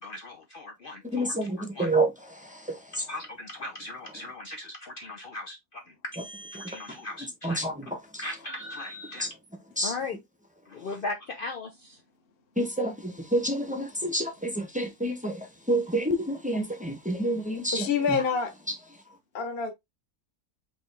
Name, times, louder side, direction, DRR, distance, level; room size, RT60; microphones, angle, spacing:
voice 1, 0.0-1.3 1.7-1.9 2.9-7.7 8.2-9.3 9.8-10.2 10.7-12.0, left 2 dB, 80° left, 0.4 m, -38 dB
voice 2, 1.1-3.0 7.4-8.2 9.2-9.3 9.8-9.9 12.6-18.2, right 1 dB, 5° right, 0.6 m, -29 dB
voice 3, 17.7-18.5 19.3-19.7, left 5 dB, 40° left, 1.0 m, -26 dB
5.2 x 3.0 x 3.3 m
omnidirectional pair, 1.7 m